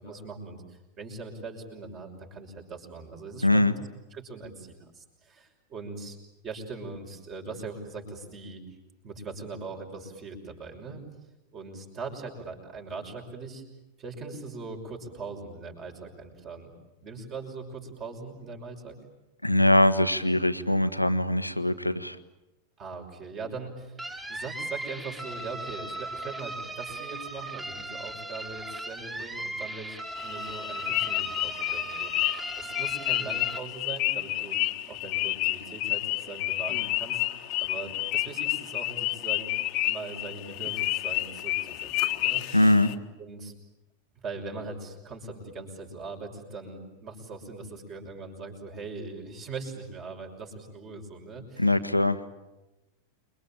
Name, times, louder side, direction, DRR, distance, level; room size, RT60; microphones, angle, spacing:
voice 1, 0.0-3.7 4.1-6.2 6.4-8.6 9.0-11.0 11.5-13.6 14.0-16.7 17.0-19.0 22.8-24.0 24.3-37.2 37.6-39.5 39.9-42.7 43.2-43.5 44.2-51.7, right 3 dB, 30° right, 2 dB, 6.1 m, -41 dB
voice 2, 3.4-3.7 19.4-22.2 42.5-42.9 51.6-52.2, left 1 dB, 90° left, 11 dB, 1.3 m, -22 dB
sound 1, 24.0-33.6, right 2 dB, 15° right, 3.2 m, -38 dB
sound 2, 30.2-42.9, left 18 dB, 40° left, 1.5 m, -30 dB
28.5 x 23.0 x 8.8 m, 0.98 s
figure-of-eight pair, 90°, 0 cm